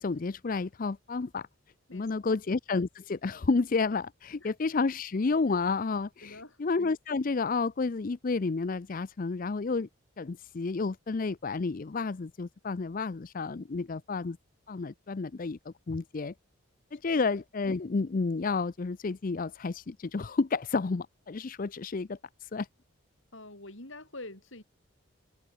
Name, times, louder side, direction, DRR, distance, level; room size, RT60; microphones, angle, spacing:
voice 1, 0.0-1.5 1.9-9.9 10.2-14.4 14.7-16.3 16.9-22.7, left 4 dB, 40° left, 0.5 m, -31 dB
voice 2, 1.9-2.4 4.4-4.5 6.2-6.6 17.1-17.3 23.3-24.6, left 2 dB, 65° left, 5.9 m, -46 dB
head